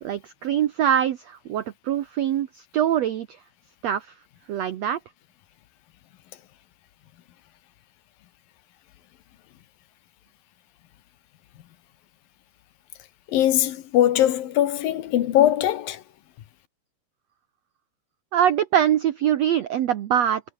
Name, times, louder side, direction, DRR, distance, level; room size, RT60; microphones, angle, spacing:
voice 1, 0.0-3.4 3.8-4.1 4.5-5.0 18.3-20.4, right 10 dB, 65° right, 1.9 m, -23 dB
voice 2, 13.3-16.0, left 12 dB, 85° left, 3.3 m, -21 dB
omnidirectional pair, 4.0 m